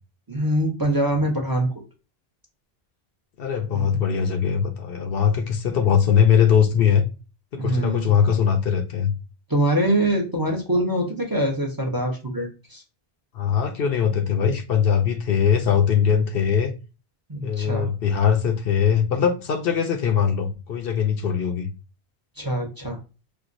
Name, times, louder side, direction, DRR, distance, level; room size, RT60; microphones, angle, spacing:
voice 1, 0.3-1.7 3.7-4.0 7.6-8.1 9.5-12.8 17.3-17.9 22.4-23.0, right 1 dB, 25° right, 0.6 m, -24 dB
voice 2, 3.4-7.1 7.5-9.1 13.3-16.7 17.4-21.7, left 7 dB, 70° left, 0.8 m, -21 dB
4.4 x 2.1 x 2.5 m
omnidirectional pair, 1.0 m